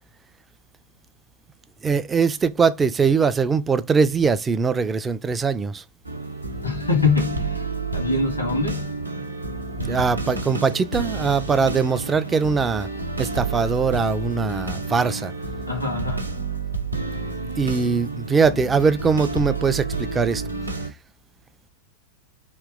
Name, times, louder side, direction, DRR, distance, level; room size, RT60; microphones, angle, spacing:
voice 1, 1.8-5.8 9.9-12.9 13.2-15.3 17.6-20.4, right 5 dB, 15° right, 0.4 m, -21 dB
sound 1, 6.0-20.9, right 3 dB, 85° right, 0.6 m, -30 dB
voice 2, 6.6-7.6 7.9-8.9 9.7-10.6 15.7-16.3, left 4 dB, 80° left, 1.2 m, -25 dB
3.0 x 2.8 x 3.7 m
figure-of-eight pair, 90°, 0 cm